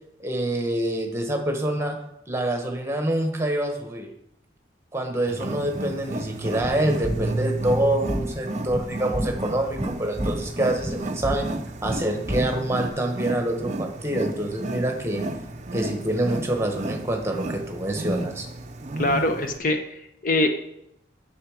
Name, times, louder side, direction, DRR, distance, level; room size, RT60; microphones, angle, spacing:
voice 1, 0.2-2.0 2.3-4.1 4.9-11.5 11.8-15.2 15.7-18.5, right 1 dB, 15° right, 3 dB, 1.2 m, -26 dB
Wild animals, 5.3-19.6, right 2 dB, 40° right, 0.5 m, -32 dB
sound 1, 6.6-12.9, equal, 5° left, 1.9 m, -32 dB
voice 2, 19.0-20.5, left 1 dB, 45° left, 5 dB, 0.7 m, -23 dB
8.9 x 6.9 x 5.0 m, 0.79 s
head